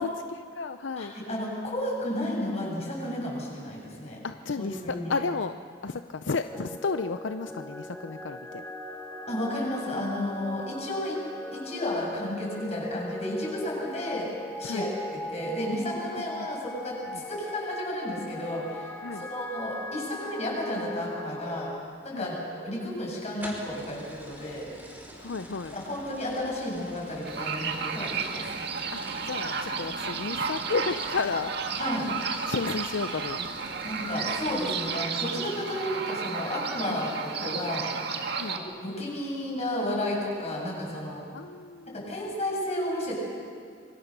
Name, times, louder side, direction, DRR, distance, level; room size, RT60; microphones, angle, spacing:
voice 1, 0.0-1.2 4.2-5.5 5.8-8.6 14.6-14.9 16.1-16.5 17.1-17.2 19.0-19.3 22.1-22.3 25.2-25.8 28.9-31.5 32.5-33.5 36.8-37.0 38.4-38.6 41.3-42.1, left 4 dB, 80° left, 9 dB, 0.6 m, -33 dB
voice 2, 1.0-4.2 4.6-5.1 9.3-11.1 11.5-14.3 14.6-15.0 15.3-18.9 19.2-21.7 22.0-24.7 25.7-28.5 31.8-32.1 33.8-37.9 38.5-41.3 41.9-43.2, left 1 dB, 35° left, -2 dB, 7.8 m, -32 dB
sound 1, 6.5-21.8, equal, 10° left, 1.7 m, -39 dB
sound 2, 23.4-35.0, equal, 10° right, 5.6 m, -47 dB
sound 3, 27.2-38.6, right 5 dB, 60° right, 1.9 m, -32 dB
26.5 x 24.0 x 6.8 m, 2.2 s
head